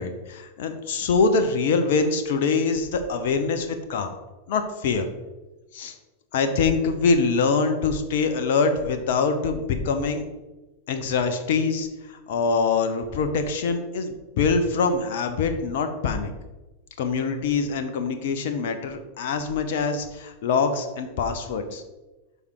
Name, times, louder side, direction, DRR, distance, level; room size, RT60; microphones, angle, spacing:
voice 1, 0.0-4.1 4.5-5.1 5.7-5.9 6.3-10.2 10.9-16.3 17.0-21.8, left 4 dB, 55° left, 7 dB, 0.9 m, -24 dB
6.9 x 5.5 x 4.8 m, 1.1 s
figure-of-eight pair, 90°, 0 cm